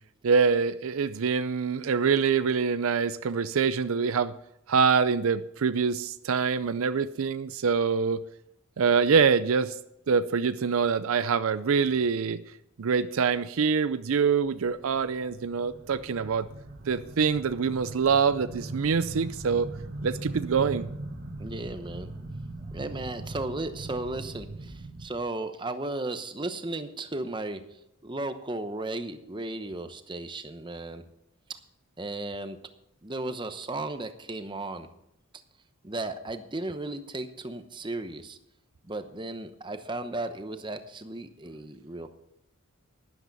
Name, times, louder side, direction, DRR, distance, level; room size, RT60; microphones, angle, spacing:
voice 1, 0.2-4.3 4.7-8.2 8.8-9.7 10.1-12.4 12.8-16.5 16.9-19.7 20.0-20.9, right 5 dB, 65° right, 14 dB, 0.5 m, -25 dB
sound 1, 14.5-25.1, right 2 dB, 45° right, 1.7 m, -40 dB
voice 2, 21.4-22.1 22.7-31.0 31.5-31.6 32.0-32.6 33.0-34.9 35.8-38.4 38.8-42.1, right 2 dB, 20° right, 9 dB, 0.9 m, -35 dB
12.0 x 11.0 x 5.4 m, 0.80 s
head